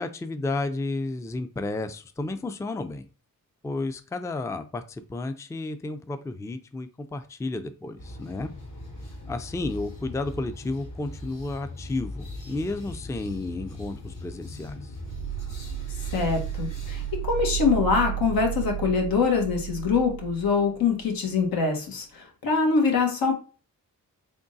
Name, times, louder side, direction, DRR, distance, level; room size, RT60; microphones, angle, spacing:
voice 1, 0.0-3.1 3.6-8.5 9.3-15.0, left 2 dB, 10° left, 10 dB, 0.4 m, -32 dB
sound 1, 8.0-18.8, left 1 dB, 65° left, 1.9 m, -40 dB
sound 2, 15.0-21.5, right 13 dB, 50° right, 0.5 m, -33 dB
voice 2, 16.1-17.0 17.3-23.3, left 5 dB, 80° left, 2 dB, 1.3 m, -24 dB
3.8 x 3.6 x 2.6 m, 0.36 s
cardioid pair, 60°, 35 cm